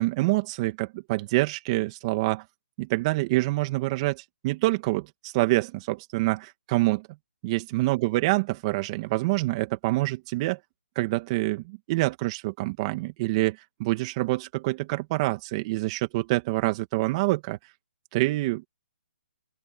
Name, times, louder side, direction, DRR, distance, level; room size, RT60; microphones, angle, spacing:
voice 1, 0.0-2.4 2.8-7.1 7.4-10.6 11.0-17.6 18.1-18.7, right 20 dB, 30° right, 2.2 m, -26 dB
open air
hypercardioid pair, 155°, 6 cm